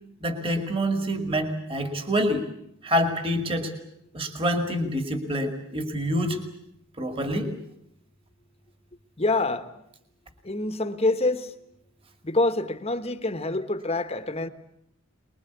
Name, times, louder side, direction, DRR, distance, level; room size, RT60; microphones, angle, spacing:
voice 1, 0.2-2.5 2.8-3.7 4.1-6.4 7.0-7.5, equal, 25° right, 2.2 m, -26 dB
voice 2, 9.2-9.7 10.4-11.5 12.2-14.5, left 2 dB, 30° left, 1.3 m, -26 dB
24.5 x 21.0 x 8.3 m
head